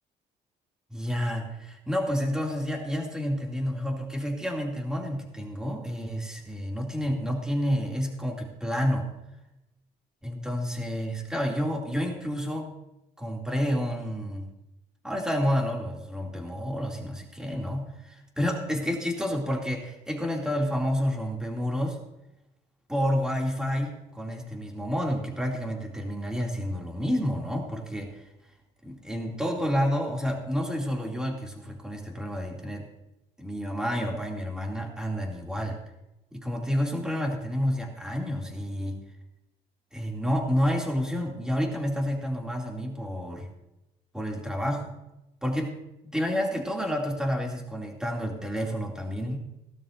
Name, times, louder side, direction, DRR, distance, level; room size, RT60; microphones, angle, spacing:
voice 1, 0.9-9.1 10.2-12.7 13.2-14.5 15.0-22.0 22.9-28.3 28.8-32.9 33.4-35.8 36.3-39.0 39.9-43.5 44.1-44.9 45.4-45.8 46.0-49.4, equal, 5° right, 0 dB, 2.6 m, -29 dB
17.5 x 12.5 x 2.6 m, 0.92 s
cardioid pair, 110°, 17 cm